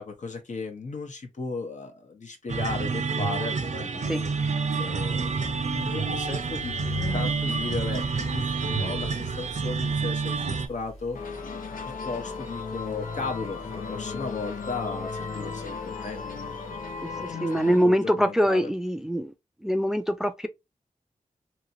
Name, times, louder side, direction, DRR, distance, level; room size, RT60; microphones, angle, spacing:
voice 1, 0.0-4.3 4.8-11.4 12.0-16.3 17.2-18.7, left 4 dB, 60° left, 0.9 m, -36 dB
sound 1, 2.5-10.7, right 4 dB, 60° right, 0.6 m, -28 dB
sound 2, 5.1-17.3, left 3 dB, 45° left, 1.3 m, -43 dB
sound 3, 11.1-17.8, left 5 dB, 90° left, 0.7 m, -35 dB
voice 2, 17.0-19.3 19.6-20.5, equal, 5° right, 0.3 m, -24 dB
2.9 x 2.8 x 2.6 m
wide cardioid pair, 85°, 14 cm